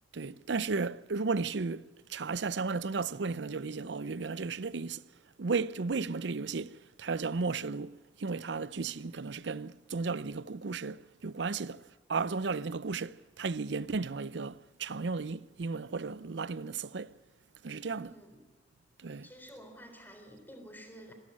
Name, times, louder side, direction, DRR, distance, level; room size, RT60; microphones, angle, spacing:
voice 1, 0.1-5.0 5.4-11.8 12.1-17.2 17.6-18.1 19.0-19.3, right 4 dB, 75° right, 0.6 m, -34 dB
voice 2, 17.9-18.4 19.2-21.1, equal, 10° left, 3.8 m, -52 dB
25.5 x 12.5 x 9.7 m
head